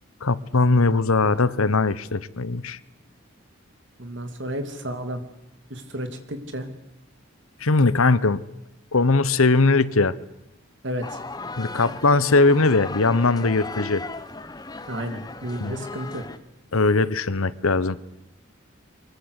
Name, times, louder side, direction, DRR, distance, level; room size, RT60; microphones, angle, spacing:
voice 1, 0.2-2.8 7.6-8.4 8.9-10.2 11.6-14.0 15.6-15.8 16.7-18.0, left 3 dB, 85° left, 18 dB, 1.0 m, -20 dB
voice 2, 4.0-5.2 5.7-6.7 10.8-11.2 14.9-16.3, equal, 55° right, 7 dB, 3.0 m, -32 dB
sound 1, 11.0-16.4, left 3 dB, 20° left, 1.0 m, -37 dB
23.5 x 21.5 x 8.2 m, 0.86 s
head